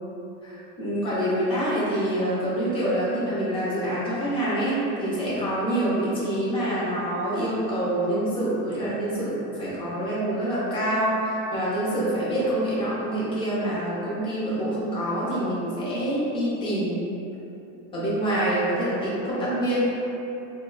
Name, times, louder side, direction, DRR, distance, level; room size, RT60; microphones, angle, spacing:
voice 1, 0.4-17.0 17.9-19.8, right 1 dB, 15° left, -8 dB, 0.3 m, -26 dB
2.6 x 2.1 x 3.6 m, 2.9 s
supercardioid pair, 160°, 39 cm